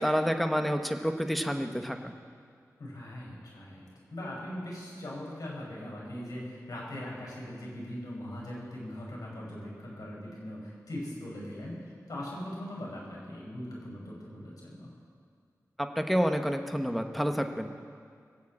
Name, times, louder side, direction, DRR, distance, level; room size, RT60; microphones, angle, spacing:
voice 1, 0.0-2.1 16.0-17.7, equal, ahead, 5 dB, 1.1 m, -29 dB
voice 2, 2.8-14.9, left 1 dB, 80° left, -4 dB, 5.7 m, -40 dB
22.0 x 7.5 x 8.6 m, 2.2 s
wide cardioid pair, 100°, 6 cm